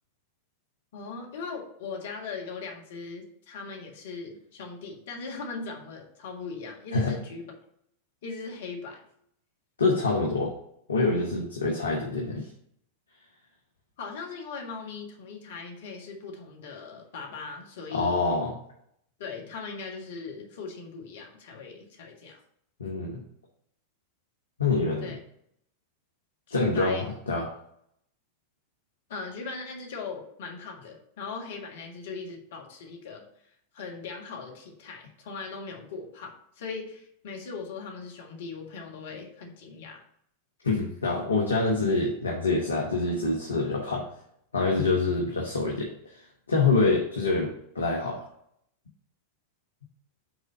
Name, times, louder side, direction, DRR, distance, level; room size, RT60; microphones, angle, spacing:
voice 1, 0.9-7.5 8.2-9.0 14.0-18.2 19.2-22.4 25.0-25.2 26.5-27.1 29.1-33.2 33.7-40.0, left 4 dB, 55° left, 0 dB, 1.6 m, -39 dB
voice 2, 9.8-10.5 10.9-12.5 17.9-18.5 22.8-23.2 24.6-25.1 26.5-27.5 40.6-44.1 44.5-48.2, left 3 dB, 75° left, -1 dB, 1.0 m, -26 dB
5.9 x 3.8 x 5.5 m, 0.71 s
figure-of-eight pair, 90°, 0 cm